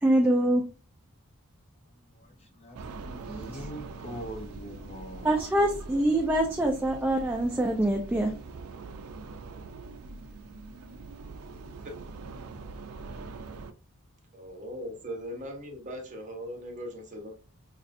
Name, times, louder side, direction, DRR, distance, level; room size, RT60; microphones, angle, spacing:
voice 1, 0.0-0.7 5.2-8.3, right 1 dB, 10° right, 0.4 m, -24 dB
voice 2, 2.0-5.3, right 1 dB, 30° left, 0.7 m, -43 dB
sound 1, 2.7-13.7, right 3 dB, 70° right, 0.4 m, -43 dB
voice 3, 14.3-17.3, equal, 35° right, 0.9 m, -39 dB
5.3 x 2.4 x 2.5 m
head